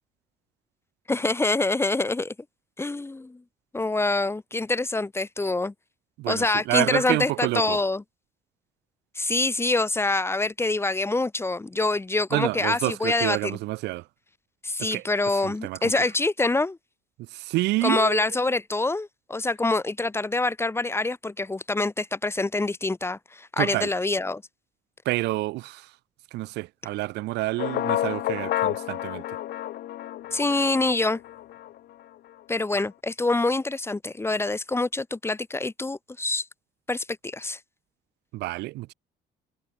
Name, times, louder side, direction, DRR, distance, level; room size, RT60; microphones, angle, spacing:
voice 1, 1.1-2.3 2.8-3.4 3.7-5.7 6.3-8.0 9.2-13.6 14.6-16.8 17.8-24.4 30.3-31.2 32.5-36.5 36.9-37.6, left 2 dB, 15° left, 2.3 m, -25 dB
voice 2, 6.2-7.8 12.3-14.0 14.8-15.0 15.4-15.9 17.2-18.2 23.6-23.9 25.0-25.9 26.3-29.2 38.3-38.9, right 19 dB, 85° right, 6.7 m, -28 dB
sound 1, 27.6-31.8, left 13 dB, 70° left, 4.2 m, -30 dB
cardioid pair, 110°, 17 cm